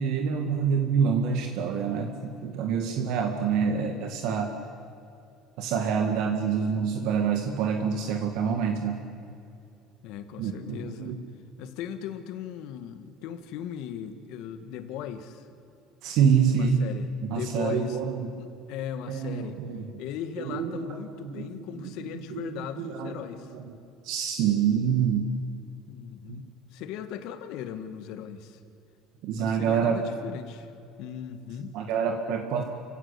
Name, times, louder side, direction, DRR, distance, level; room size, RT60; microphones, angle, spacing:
voice 1, 0.0-4.6 5.6-9.0 10.4-11.2 16.0-16.9 17.2-18.3 19.1-19.9 20.4-21.5 21.8-21.9 22.3-23.2 23.5-23.8 24.0-25.3 26.3-26.4 29.2-30.0 31.7-32.6, right 7 dB, 65° right, 4 dB, 1.9 m, -27 dB
voice 2, 10.0-11.2 11.6-15.5 16.5-18.0 18.3-19.6 20.0-23.5 25.9-28.6 29.4-30.7 31.0-31.8, left 9 dB, 70° left, 9 dB, 1.8 m, -38 dB
29.0 x 16.5 x 8.6 m, 2.6 s
cardioid pair, 145°, 0 cm